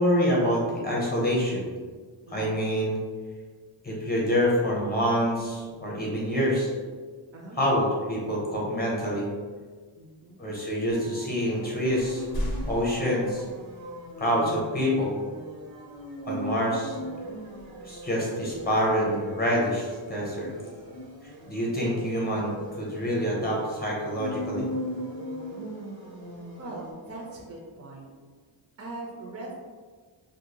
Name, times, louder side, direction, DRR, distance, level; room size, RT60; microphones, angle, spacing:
voice 1, 0.0-1.6 2.3-3.0 3.8-6.7 7.5-9.3 10.4-12.2 12.7-13.5 14.2-15.2 16.3-17.0 17.8-20.5 21.2-24.7, equal, 20° left, -4 dB, 0.7 m, -26 dB
sound 1, 5.3-6.1 8.2-8.4 9.2-10.0 10.8-10.9 11.3-14.2 14.7-14.8 17.4-19.6, equal, 50° left, 0.6 m, -40 dB
voice 2, 10.0-10.5 26.6-28.1 28.8-29.5, right 2 dB, 35° right, -1 dB, 0.4 m, -41 dB
sound 2, 10.9-27.5, equal, 75° right, 0.6 m, -40 dB
2.6 x 2.0 x 2.8 m, 1.5 s
wide cardioid pair, 100°, 47 cm